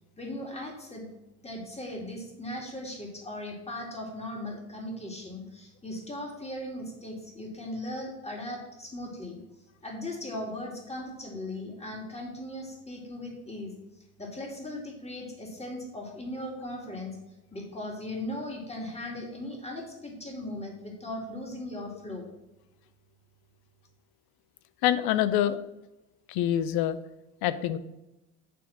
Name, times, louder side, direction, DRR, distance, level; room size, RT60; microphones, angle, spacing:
voice 1, 0.2-1.1 1.4-9.4 9.8-13.7 14.2-17.2 17.5-22.2, left 1 dB, 15° left, 0 dB, 2.5 m, -38 dB
voice 2, 24.8-25.6 26.3-27.0 27.4-27.8, left 11 dB, 60° left, 14 dB, 0.7 m, -25 dB
8.5 x 3.6 x 6.0 m, 0.97 s
hypercardioid pair, 70°, 42 cm